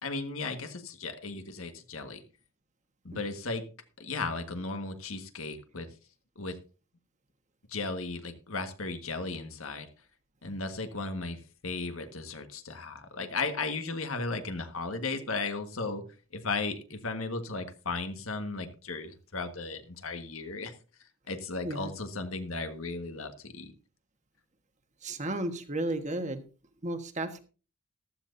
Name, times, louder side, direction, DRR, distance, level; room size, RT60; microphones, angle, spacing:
voice 1, 0.0-2.2 3.0-3.6 4.0-5.9 6.3-6.6 7.7-9.9 10.4-16.0 16.3-20.7 21.3-23.7, left 3 dB, 80° left, 7 dB, 1.6 m, -35 dB
voice 2, 25.0-26.4 26.8-27.4, right 1 dB, 35° right, 8 dB, 1.4 m, -33 dB
14.5 x 13.0 x 2.7 m, 0.35 s
head